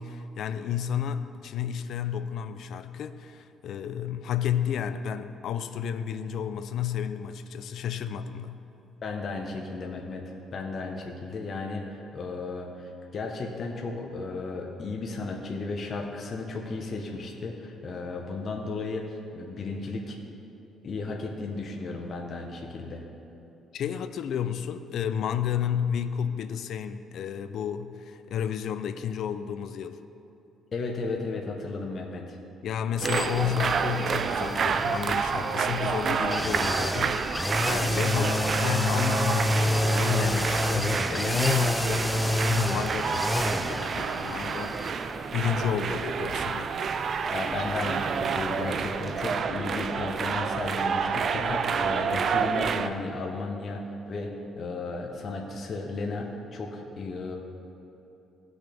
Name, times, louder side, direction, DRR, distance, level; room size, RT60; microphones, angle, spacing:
voice 1, 0.0-8.6 23.7-30.0 32.6-45.0 45.3-46.7, left 9 dB, 65° left, 11 dB, 0.5 m, -31 dB
voice 2, 9.0-10.2 10.5-20.2 20.8-23.0 30.7-32.4 47.3-57.4, left 3 dB, 45° left, 0 dB, 1.1 m, -34 dB
sound 1, 33.0-48.8 49.1-49.2, left 1 dB, 5° left, 0.5 m, -30 dB
sound 2, 33.0-52.9, right 6 dB, 50° right, 0.4 m, -29 dB
17.0 x 6.3 x 3.5 m, 2.9 s
cardioid pair, 105°, 0 cm